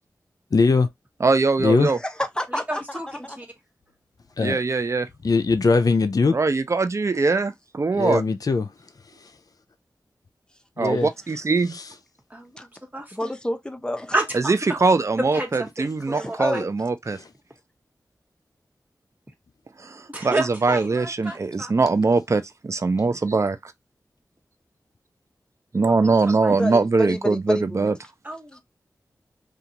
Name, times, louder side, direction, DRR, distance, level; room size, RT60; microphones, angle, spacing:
voice 1, 0.5-0.9 1.6-1.9 4.4-4.6 5.2-6.4 8.0-8.7 10.8-11.1 11.7-11.8, left 4 dB, 60° left, 0.5 m, -20 dB
voice 2, 1.2-2.0 4.4-5.1 6.3-8.2 10.8-11.8 14.3-17.2 19.8-23.7 25.7-27.9, right 3 dB, 45° right, 0.5 m, -22 dB
voice 3, 1.8-3.4 12.6-12.7 13.1-14.1 16.1-16.7 20.9-21.0 26.6-27.9 28.5-28.6, left 1 dB, 10° left, 0.7 m, -29 dB
voice 4, 2.5-3.5 12.3-13.3 14.1-14.5 15.2-16.6 20.1-21.7 25.8-26.5 28.2-28.6, right 1 dB, 25° right, 1.4 m, -31 dB
2.5 x 2.4 x 2.9 m
cardioid pair, 40°, 7 cm